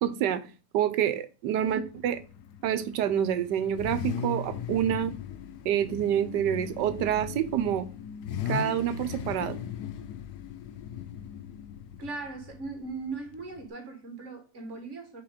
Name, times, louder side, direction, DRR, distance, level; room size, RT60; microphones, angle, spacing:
voice 1, 0.0-0.4 0.7-2.2 2.6-5.1 5.6-7.9 8.5-9.6, right 10 dB, 85° right, 1.3 m, -27 dB
Car / Idling / Accelerating revving vroom, 1.6-13.7, left 8 dB, 75° left, 1.1 m, -38 dB
voice 2, 12.0-15.2, right 4 dB, 45° right, 1.6 m, -39 dB
5.9 x 3.9 x 5.0 m
omnidirectional pair, 1.8 m